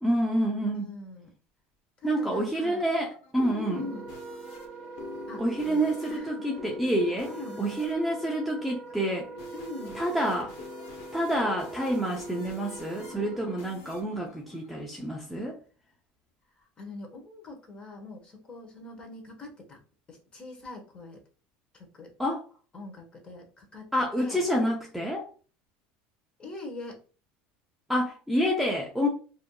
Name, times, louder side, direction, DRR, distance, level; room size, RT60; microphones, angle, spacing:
voice 1, 0.0-0.9 2.0-3.9 5.4-7.3 7.6-9.3 9.9-10.5 11.1-15.6 22.2-22.4 23.9-25.3 27.9-29.1, equal, ahead, 0.7 m, -28 dB
voice 2, 0.7-1.3 2.0-2.8 3.4-4.1 5.3-6.5 7.3-7.7 9.5-10.0 16.8-19.8 20.1-21.2 21.7-22.1 22.7-23.9 24.2-24.4 26.4-27.0, left 2 dB, 25° left, 1.3 m, -42 dB
sound 1, 2.6-15.3, left 2 dB, 80° left, 1.3 m, -45 dB
Wind instrument woodwind instrument, 3.7-13.7, right 4 dB, 50° right, 0.7 m, -45 dB
4.9 x 2.7 x 2.3 m
supercardioid pair, 135°, 4 cm